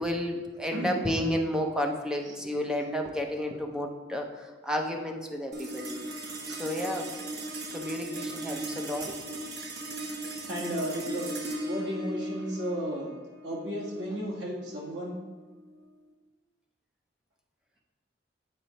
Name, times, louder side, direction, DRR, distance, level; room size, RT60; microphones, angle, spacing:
voice 1, 0.0-6.0 6.6-7.1 7.7-9.2, left 1 dB, 5° right, 2 dB, 0.6 m, -31 dB
voice 2, 0.7-1.1 2.2-2.4 6.3-6.6 10.5-11.3 11.6-15.2, equal, 80° right, -2 dB, 1.7 m, -34 dB
sound 1, 5.5-16.1, right 1 dB, 65° right, 1.0 m, -38 dB
8.6 x 4.4 x 4.1 m, 1.3 s
head